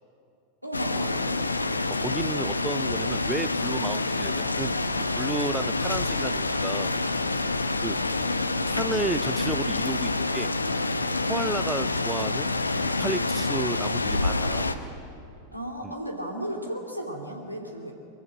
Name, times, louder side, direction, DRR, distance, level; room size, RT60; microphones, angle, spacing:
voice 1, 0.6-1.4 15.5-17.9, equal, 90° right, 2 dB, 2.6 m, -34 dB
sound 1, 0.7-14.7, left 2 dB, 80° left, 0.9 m, -27 dB
voice 2, 1.9-4.8 5.2-6.9 7.8-8.0 8.7-10.5 11.3-14.7 15.8-15.9, right 2 dB, 5° right, 16 dB, 0.4 m, -32 dB
23.0 x 14.5 x 8.8 m, 2.6 s
figure-of-eight pair, 90°, 0 cm